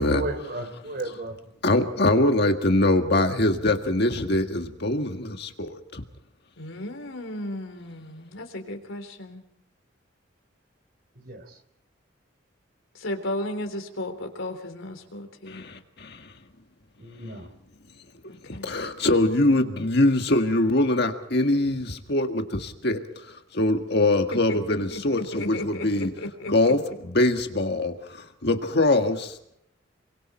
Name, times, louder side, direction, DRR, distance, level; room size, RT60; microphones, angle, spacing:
voice 1, 0.0-1.4 11.1-11.6 17.0-17.5, right 2 dB, 50° right, 8 dB, 3.5 m, -34 dB
voice 2, 1.6-6.0 15.5-16.3 18.5-23.2 23.5-26.1 26.5-29.6, left 1 dB, 55° left, 5 dB, 1.7 m, -23 dB
voice 3, 6.6-9.4 12.9-15.6 18.3-18.8 24.5-24.6 24.9-26.5, left 1 dB, 80° left, 6 dB, 3.6 m, -34 dB
28.0 x 24.0 x 4.4 m, 0.74 s
head